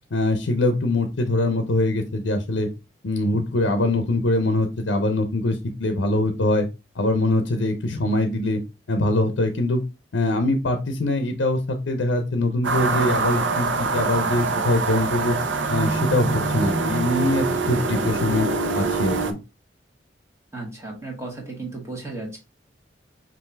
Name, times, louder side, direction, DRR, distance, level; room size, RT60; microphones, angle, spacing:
voice 1, 0.1-2.7 3.0-6.7 6.9-8.6 8.9-9.8 10.1-15.4 15.7-18.5 18.7-19.4, left 2 dB, 80° left, 6 dB, 0.6 m, -23 dB
sound 1, 12.6-19.3, right 3 dB, 85° right, 0.7 m, -24 dB
voice 2, 20.5-22.4, right 3 dB, 15° right, -1 dB, 1.5 m, -34 dB
5.5 x 2.6 x 3.3 m, 0.27 s
head